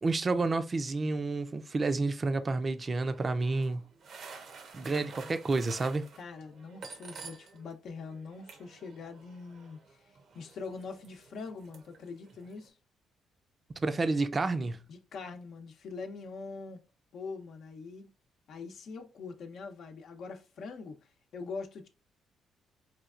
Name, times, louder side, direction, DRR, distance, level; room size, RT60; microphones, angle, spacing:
voice 1, 0.0-3.8 4.7-6.1 13.8-14.8, right 3 dB, 35° right, 0.5 m, -30 dB
sound 1, 3.1-7.7 8.0-12.7, right 5 dB, 65° right, 0.7 m, -51 dB
voice 2, 4.8-5.4 6.2-12.8 14.9-16.8 17.1-18.1 18.5-21.9, left 4 dB, 70° left, 0.7 m, -43 dB
4.4 x 2.3 x 2.4 m
cardioid pair, 90°, 0 cm